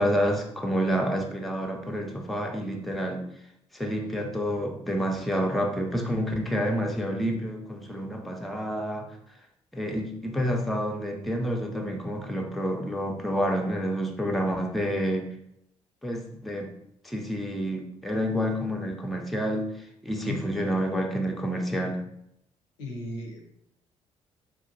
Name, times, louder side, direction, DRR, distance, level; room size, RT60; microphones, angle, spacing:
voice 1, 0.0-3.3 3.7-9.1 9.7-15.3 16.0-16.7 17.0-19.7 20.0-22.0, equal, ahead, 2 dB, 0.5 m, -28 dB
voice 2, 20.2-20.7 22.8-23.5, left 2 dB, 70° left, 1 dB, 0.6 m, -37 dB
4.1 x 2.2 x 2.6 m, 0.75 s
figure-of-eight pair, 45°, 15 cm